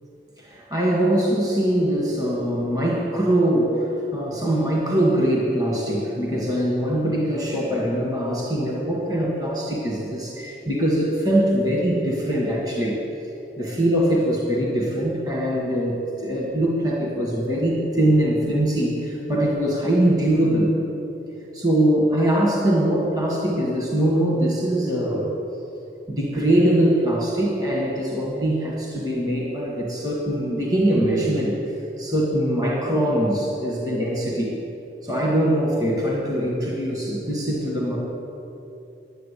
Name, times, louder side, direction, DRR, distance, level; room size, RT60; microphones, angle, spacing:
voice 1, 0.4-13.0 13.6-20.8 21.5-25.4 26.1-31.6 32.0-34.6 35.0-38.0, right 1 dB, 20° right, -3 dB, 1.8 m, -22 dB
10.5 x 9.2 x 8.5 m, 2.9 s
head